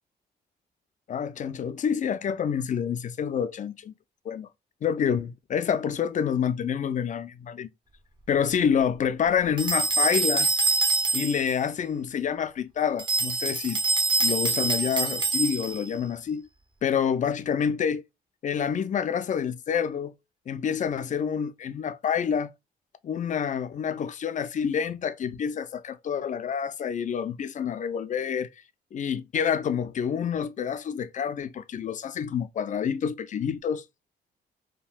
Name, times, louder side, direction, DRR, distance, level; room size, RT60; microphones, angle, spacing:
voice 1, 1.1-3.9 4.3-4.5 4.8-7.7 8.3-10.5 11.1-13.8 14.2-16.5 16.8-18.0 18.4-20.1 20.5-22.5 23.0-28.5 28.9-33.8, left 7 dB, 45° left, 0.4 m, -28 dB
sound 1, 9.6-11.5 13.0-15.9, right 3 dB, 25° right, 0.8 m, -25 dB
3.5 x 2.2 x 2.4 m
cardioid pair, 80°, 18 cm